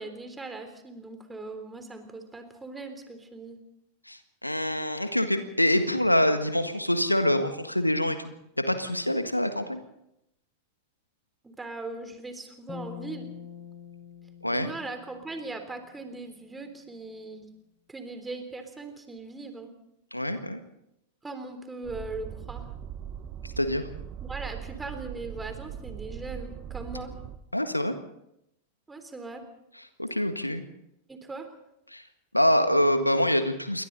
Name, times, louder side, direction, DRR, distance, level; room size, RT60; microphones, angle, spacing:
voice 1, 0.0-3.6 11.4-13.3 14.5-17.5 17.9-19.7 21.2-22.6 24.2-27.1 28.9-29.4 31.1-31.5, right 3 dB, 10° right, 7 dB, 3.5 m, -39 dB
voice 2, 4.1-9.8 14.4-14.7 20.1-20.6 23.4-23.9 27.5-28.0 30.0-30.6 31.9-32.0 32.3-33.8, left 1 dB, 85° left, 9 dB, 1.6 m, -25 dB
sound 1, 12.7-16.0, left 8 dB, 20° left, 4.7 m, -45 dB
sound 2, 21.8-27.4, right 9 dB, 35° right, 1.3 m, -40 dB
28.0 x 22.5 x 4.1 m, 0.82 s
figure-of-eight pair, 90°, 0 cm